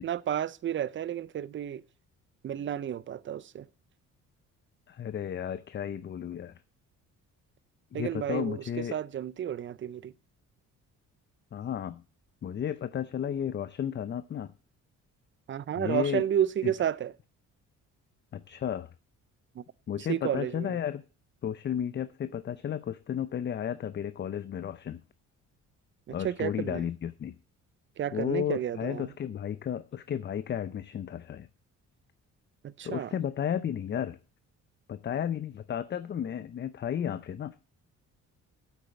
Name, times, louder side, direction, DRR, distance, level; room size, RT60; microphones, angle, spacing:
voice 1, 0.0-1.8 2.4-3.7 7.9-10.1 15.5-17.1 19.6-19.7 20.0-20.8 26.1-26.8 28.0-29.1 32.6-33.1, right 10 dB, 40° right, 0.6 m, -31 dB
voice 2, 4.9-6.5 7.9-8.9 11.5-12.0 12.4-14.5 15.8-16.2 16.6-16.7 18.3-18.9 19.9-21.0 21.4-25.0 26.1-27.4 28.1-31.5 32.8-34.2 34.9-37.5, left 9 dB, 35° left, 0.6 m, -33 dB
8.5 x 8.2 x 6.9 m
cardioid pair, 110°, 31 cm